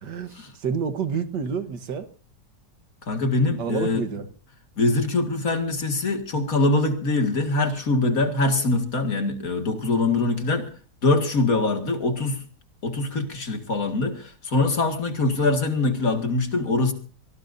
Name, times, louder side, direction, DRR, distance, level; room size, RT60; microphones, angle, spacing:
voice 1, 0.0-2.1 3.6-4.3, right 6 dB, 80° right, 10 dB, 1.9 m, -29 dB
voice 2, 3.1-4.0 4.8-10.7 11.0-12.4 12.8-16.9, left 2 dB, 55° left, 5 dB, 2.4 m, -23 dB
24.5 x 18.5 x 2.7 m, 0.39 s
omnidirectional pair, 1.8 m